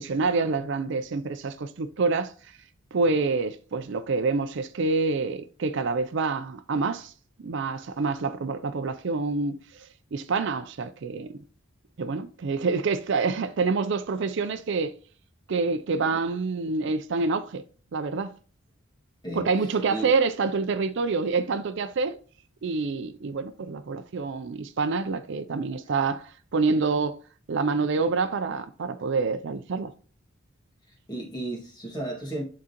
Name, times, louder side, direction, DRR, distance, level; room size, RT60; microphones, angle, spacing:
voice 1, 0.0-2.5 2.9-7.1 7.4-11.4 12.0-14.9 15.5-17.6 17.9-18.3 19.3-22.2 22.6-27.2 27.5-29.9, right 4 dB, 60° right, 0.5 m, -27 dB
voice 2, 31.1-32.4, right 1 dB, 20° left, 1.8 m, -33 dB
11.0 x 3.8 x 2.9 m
head